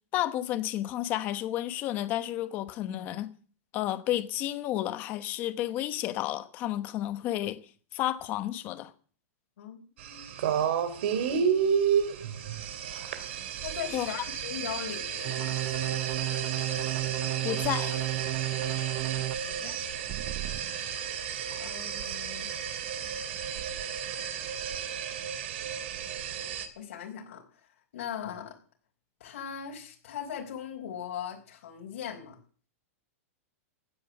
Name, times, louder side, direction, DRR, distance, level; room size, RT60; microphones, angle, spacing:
voice 1, 0.1-3.3 3.7-7.6 7.9-8.9 13.9-14.1 17.4-18.0, left 13 dB, 20° left, 1.0 m, -31 dB
voice 2, 9.6-10.3 13.6-15.6 19.4-19.8 21.6-22.5 26.8-28.6 29.2-32.4, left 9 dB, 65° left, 4.6 m, -39 dB
sound 1, 10.0-26.7, right 7 dB, 50° right, 2.5 m, -32 dB
sound 2, 15.2-19.3 20.1-20.6, right 19 dB, 25° right, 0.6 m, -33 dB
16.0 x 9.5 x 7.3 m
supercardioid pair, 180°, 8 cm